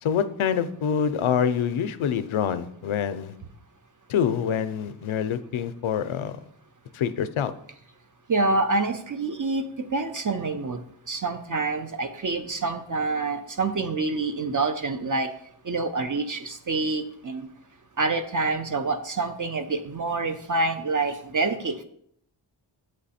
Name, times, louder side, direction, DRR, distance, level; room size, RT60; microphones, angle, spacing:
voice 1, 0.0-3.3 4.1-6.4 6.9-7.5, left 8 dB, 80° left, 12 dB, 0.5 m, -26 dB
voice 2, 8.3-10.8 11.1-15.3 15.6-17.5 18.0-21.8, right 3 dB, 40° right, 7 dB, 0.5 m, -27 dB
7.5 x 3.3 x 4.1 m, 0.67 s
wide cardioid pair, 75°, 48 cm